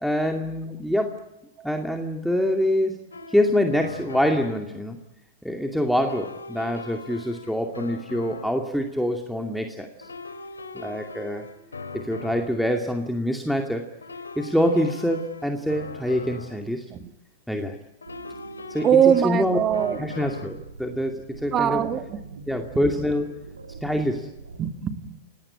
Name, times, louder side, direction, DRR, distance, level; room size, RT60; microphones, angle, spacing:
voice 1, 0.0-1.3 1.6-3.0 3.3-5.0 5.4-10.1 10.7-11.5 11.9-13.9 14.4-16.9 17.5-17.8 18.7-19.6 20.0-21.8 22.5-23.3 23.8-24.3, equal, ahead, 3 dB, 2.4 m, -25 dB
sound 1, 3.1-4.7 6.0-8.7 10.0-12.7 14.0-16.7 18.0-20.7, left 3 dB, 85° left, 2.4 m, -40 dB
sound 2, 17.9-24.7, right 4 dB, 85° right, 2.7 m, -44 dB
voice 2, 18.8-20.0 21.5-22.2 24.6-25.3, right 9 dB, 30° right, 9 dB, 2.2 m, -22 dB
29.5 x 18.0 x 8.8 m, 0.91 s
hypercardioid pair, 105°, 0 cm